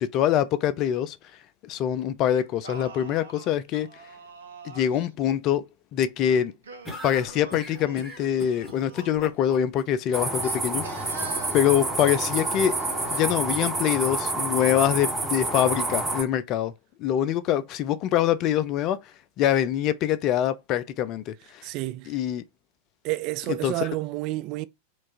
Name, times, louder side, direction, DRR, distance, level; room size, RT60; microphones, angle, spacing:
voice 1, 0.0-1.2 1.6-3.9 4.6-5.6 5.9-6.5 7.0-11.2 11.5-12.8 13.1-16.7 17.0-19.0 19.4-21.6 22.1-22.4 23.5-23.9, left 10 dB, 35° left, 0.4 m, -24 dB
Singing, 2.3-5.1 6.2-9.4 10.4-13.5, right 4 dB, 70° right, 0.7 m, -44 dB
sound 1, 6.8-9.8, left 1 dB, 15° left, 1.4 m, -40 dB
sound 2, 10.1-16.2, right 2 dB, 10° right, 1.2 m, -28 dB
voice 2, 21.6-22.1 23.0-24.7, right 18 dB, 40° right, 0.3 m, -30 dB
4.5 x 2.4 x 2.8 m
figure-of-eight pair, 90°, 0 cm